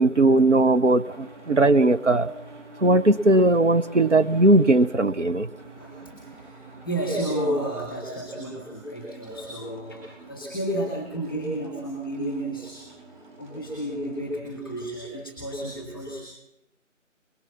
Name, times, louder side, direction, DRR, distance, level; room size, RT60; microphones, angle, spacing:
voice 1, 0.0-2.3 2.8-5.5, right 2 dB, 65° right, 10 dB, 1.2 m, -19 dB
sound 1, 1.0-14.4, right 3 dB, 35° right, 7.4 m, -49 dB
voice 2, 5.7-12.8 13.1-16.2, right 1 dB, 5° right, -4 dB, 2.1 m, -32 dB
23.5 x 21.5 x 5.9 m, 0.90 s
figure-of-eight pair, 165°, 39 cm